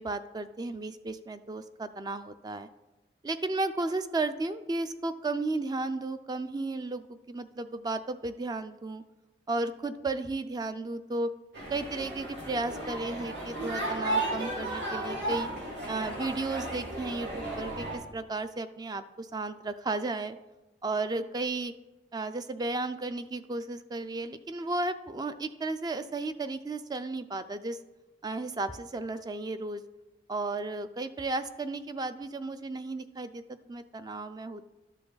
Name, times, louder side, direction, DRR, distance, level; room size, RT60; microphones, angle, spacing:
voice 1, 0.0-2.7 3.2-9.0 9.5-11.3 11.7-15.5 15.9-20.4 20.8-21.7 22.1-27.8 28.2-29.8 30.3-33.4 33.7-34.7, right 2 dB, 25° right, 11 dB, 0.3 m, -34 dB
sound 1, 11.5-18.0, right 2 dB, 70° right, 2.7 m, -34 dB
12.0 x 5.8 x 3.9 m, 1.0 s
head